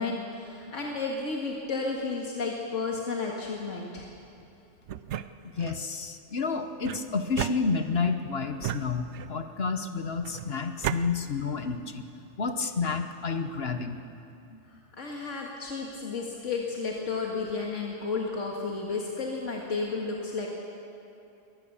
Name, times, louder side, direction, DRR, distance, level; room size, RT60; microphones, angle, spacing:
voice 1, 0.0-4.1 15.0-20.5, left 4 dB, 85° left, -1 dB, 2.1 m, -32 dB
sound 1, 4.9-5.8 6.8-8.1 8.6-9.5 10.2-11.0, right 10 dB, 70° right, 0.9 m, -35 dB
voice 2, 5.6-12.1 12.4-14.0 14.5-14.6, left 4 dB, 55° left, 7 dB, 1.2 m, -30 dB
22.5 x 18.5 x 7.0 m, 2.6 s
omnidirectional pair, 1.2 m